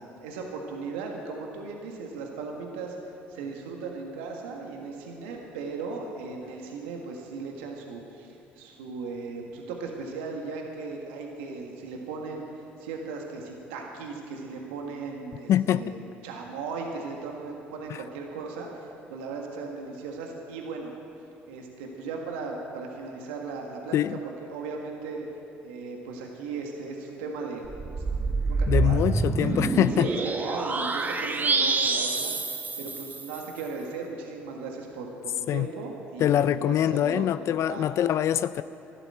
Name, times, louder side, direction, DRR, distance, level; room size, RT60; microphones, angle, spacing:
voice 1, 0.0-3.0 3.3-12.5 12.8-20.9 21.5-24.0 24.5-25.3 25.6-27.6 28.5-29.0 29.4-29.6 30.0-37.3 37.7-37.9, right 4 dB, 85° right, 1 dB, 1.6 m, -37 dB
voice 2, 15.5-16.0 17.9-18.0 23.9-24.2 28.7-30.1 35.5-35.7 36.2-38.6, left 11 dB, 60° left, 14 dB, 0.4 m, -24 dB
sound 1, 27.6-33.5, right 3 dB, 30° right, 1.2 m, -27 dB
13.0 x 11.0 x 8.8 m, 2.8 s
hypercardioid pair, 65°, 6 cm